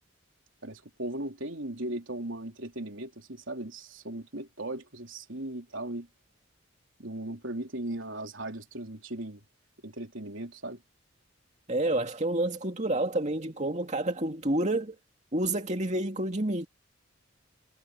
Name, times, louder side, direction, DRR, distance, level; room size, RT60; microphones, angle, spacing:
voice 1, 0.6-6.1 7.0-9.4 9.8-10.8, right 1 dB, 70° right, 3.7 m, -37 dB
voice 2, 11.7-15.0 15.3-16.7, right 1 dB, 35° right, 2.5 m, -29 dB
head